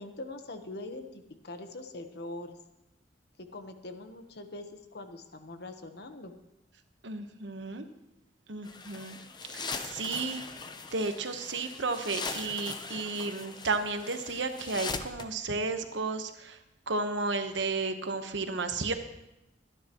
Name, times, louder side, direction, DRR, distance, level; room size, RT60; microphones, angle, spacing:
voice 1, 0.0-2.6 3.4-6.3, left 2 dB, 60° left, 7 dB, 1.1 m, -43 dB
voice 2, 7.0-7.9 8.5-9.2 9.5-16.6 16.9-18.9, right 3 dB, 90° right, 7 dB, 1.1 m, -33 dB
sound 1, 8.6-15.3, left 4 dB, 25° left, 0.7 m, -40 dB
24.0 x 10.0 x 3.0 m, 0.89 s
head